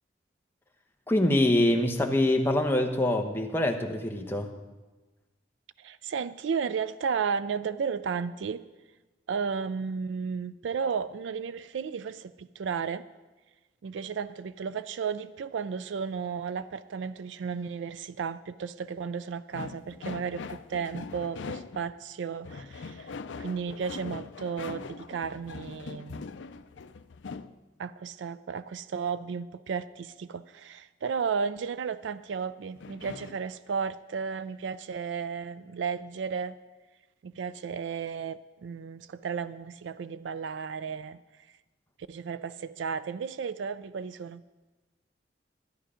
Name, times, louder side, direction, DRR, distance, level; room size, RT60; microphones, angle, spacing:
voice 1, 1.1-4.5, left 1 dB, 10° left, 4 dB, 0.9 m, -24 dB
voice 2, 5.8-8.6 9.3-13.0 13.8-23.1 23.4-26.2 27.8-36.5 37.2-41.2 42.1-44.4, right 6 dB, 85° right, 14 dB, 0.4 m, -34 dB
sound 1, 19.5-21.9 22.4-27.5 32.8-33.4, left 4 dB, 90° left, 0.5 m, -41 dB
13.5 x 10.0 x 5.0 m, 1.2 s
head